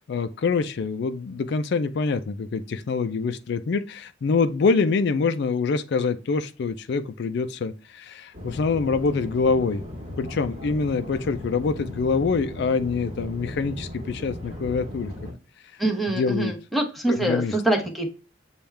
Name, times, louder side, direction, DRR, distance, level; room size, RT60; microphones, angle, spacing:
voice 1, 0.0-9.8 10.2-15.1 16.1-16.5 17.1-17.5, left 4 dB, 65° left, 0.4 m, -25 dB
sound 1, 8.3-15.3, left 1 dB, 35° right, 1.3 m, -37 dB
voice 2, 15.8-18.1, right 2 dB, ahead, 0.9 m, -25 dB
7.0 x 2.3 x 3.2 m
head